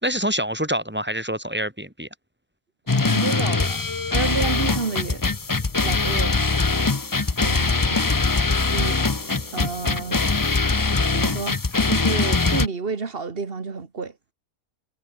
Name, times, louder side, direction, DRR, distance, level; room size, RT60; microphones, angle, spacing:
voice 1, 0.0-2.1, equal, 5° right, 4.2 m, -26 dB
sound 1, 2.9-12.7, left 3 dB, 25° left, 0.4 m, -22 dB
voice 2, 2.9-3.8 4.1-5.2 5.8-6.5 7.1-8.1 8.7-9.1 9.5-10.2 11.1-11.6 11.8-14.2, right 4 dB, 40° right, 1.9 m, -30 dB
sound 2, 4.1-10.3, left 2 dB, 80° left, 8.6 m, -50 dB
omnidirectional pair, 1.5 m